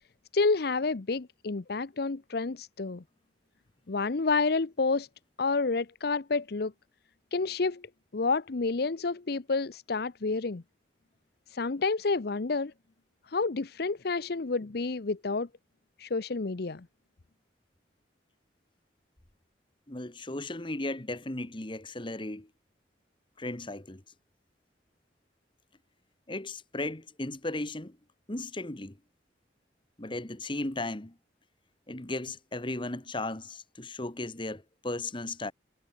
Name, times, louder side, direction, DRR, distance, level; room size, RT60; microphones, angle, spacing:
voice 1, 0.3-3.0 3.9-5.1 5.4-6.7 7.3-7.8 8.1-10.6 11.5-12.7 13.3-15.5 16.0-16.9, left 3 dB, 60° left, 0.7 m, -29 dB
voice 2, 19.9-22.5 23.4-24.0 26.3-28.0 28.3-29.0 30.0-31.1 31.9-35.5, left 2 dB, 25° left, 1.5 m, -36 dB
head